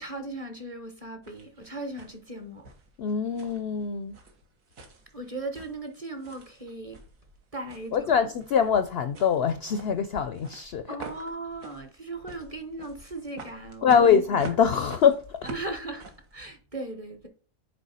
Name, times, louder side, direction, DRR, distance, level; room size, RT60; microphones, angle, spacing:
voice 1, 0.0-2.7 5.1-7.0 7.5-8.2 10.9-14.2 15.4-16.0 16.3-17.3, right 2 dB, 30° right, 0.9 m, -37 dB
sound 1, 1.2-16.5, right 3 dB, 75° right, 1.7 m, -47 dB
voice 2, 3.0-4.2 7.9-11.0 13.8-15.4, left 7 dB, 65° left, 0.6 m, -23 dB
6.8 x 4.6 x 4.1 m
omnidirectional pair, 1.5 m